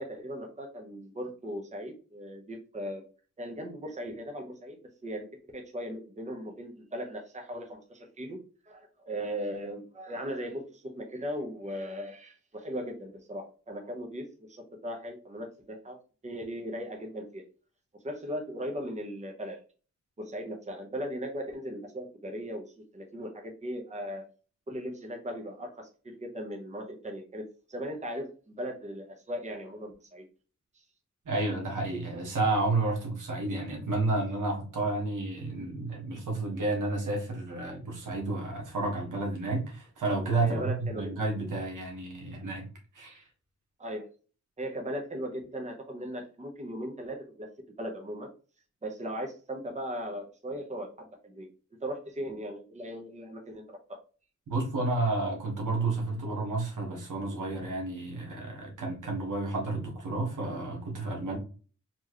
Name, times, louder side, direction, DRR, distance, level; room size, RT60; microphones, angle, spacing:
voice 1, 0.0-3.0 3.4-4.8 5.0-5.3 5.5-8.4 8.6-16.0 16.2-17.4 18.0-19.6 20.2-22.6 22.9-24.2 24.7-30.2 30.7-30.8 40.4-41.1 43.8-44.1 44.6-47.5 47.8-48.3 48.8-51.5 51.8-54.0, equal, 25° right, 2 dB, 1.0 m, -38 dB
voice 2, 31.2-42.7 42.9-43.3 54.5-61.4, right 2 dB, 90° right, 0 dB, 1.6 m, -31 dB
4.5 x 3.0 x 3.0 m, 0.37 s
wide cardioid pair, 105°, 30 cm